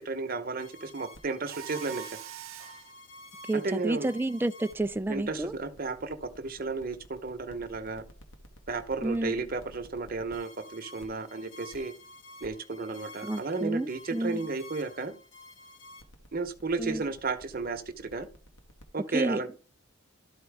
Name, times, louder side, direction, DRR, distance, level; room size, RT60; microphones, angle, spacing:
voice 1, 0.0-2.1 3.5-4.1 5.1-8.0 8.7-11.9 12.4-15.1 16.3-18.3 18.9-19.5, right 3 dB, 45° right, 0.9 m, -33 dB
sound 1, 0.6-18.8, left 1 dB, 65° left, 1.3 m, -50 dB
Mechanisms, 1.5-2.9, right 12 dB, 75° right, 0.7 m, -43 dB
voice 2, 3.5-5.5 9.0-9.4 13.2-14.4 16.8-17.0 19.1-19.4, right 2 dB, 10° right, 0.3 m, -30 dB
13.0 x 4.4 x 3.4 m
head